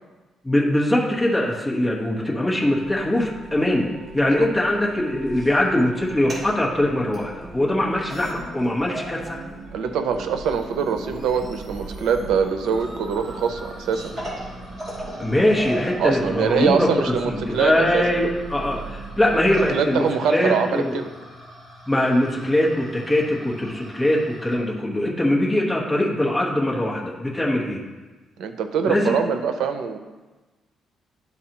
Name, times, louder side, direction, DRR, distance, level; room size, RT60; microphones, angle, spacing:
voice 1, 0.4-3.9 4.1-9.4 15.2-21.0 21.9-27.8 28.8-29.1, left 1 dB, 5° left, -4 dB, 1.1 m, -22 dB
U-Bahn Journey day, 2.6-19.7, right 3 dB, 65° right, 1.0 m, -40 dB
sound 1, 6.0-6.5 7.1-7.2 7.8-7.9 8.1-9.3 9.6-24.6, equal, 20° right, 2.3 m, -40 dB
voice 2, 9.7-14.1 16.0-18.0 19.7-21.1 28.4-30.0, right 6 dB, 90° right, 7 dB, 0.6 m, -23 dB
11.5 x 4.0 x 2.9 m, 1.2 s
cardioid pair, 155°, 0 cm